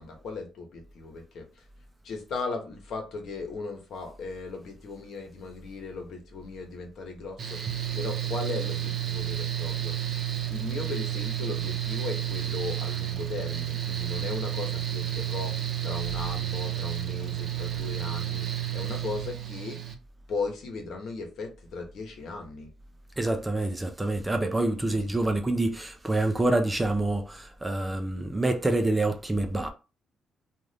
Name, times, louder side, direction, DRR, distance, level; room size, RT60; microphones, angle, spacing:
voice 1, 0.0-1.6 2.0-7.6 7.9-10.2 10.5-15.5 15.8-19.8 20.3-22.7 25.0-25.1, left 4 dB, 70° left, 1.0 m, -37 dB
Mechanical fan, 7.4-19.9, right 12 dB, 55° right, 0.7 m, -31 dB
voice 2, 23.2-29.7, right 2 dB, 15° right, 0.5 m, -27 dB
2.6 x 2.5 x 3.3 m
cardioid pair, 90°, 0 cm